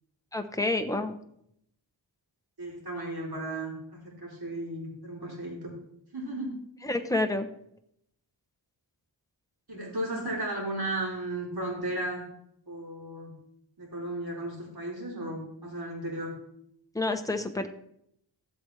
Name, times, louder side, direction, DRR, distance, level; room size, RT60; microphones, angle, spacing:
voice 1, 0.3-1.1 6.8-7.5 16.9-17.7, left 2 dB, 5° left, 6 dB, 0.9 m, -28 dB
voice 2, 2.6-5.7 6.1-6.5 9.7-12.2 12.7-13.3 13.8-16.3, right 1 dB, 55° right, -3 dB, 3.8 m, -35 dB
14.5 x 7.8 x 3.3 m, 0.73 s
wide cardioid pair, 95°, 46 cm